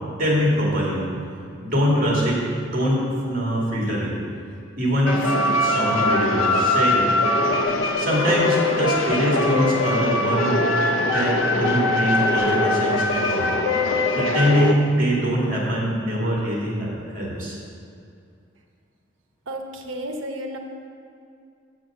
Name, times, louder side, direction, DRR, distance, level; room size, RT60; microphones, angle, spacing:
voice 1, 0.2-1.0 1.6-4.1 4.8-7.1 8.0-10.6 11.1-13.5 14.1-17.6, equal, 45° right, -4 dB, 2.3 m, -23 dB
sound 1, 5.1-14.7, left 2 dB, 90° left, 0.7 m, -21 dB
voice 2, 19.5-20.6, equal, 75° right, 3 dB, 0.9 m, -32 dB
7.4 x 6.2 x 6.1 m, 2.4 s
head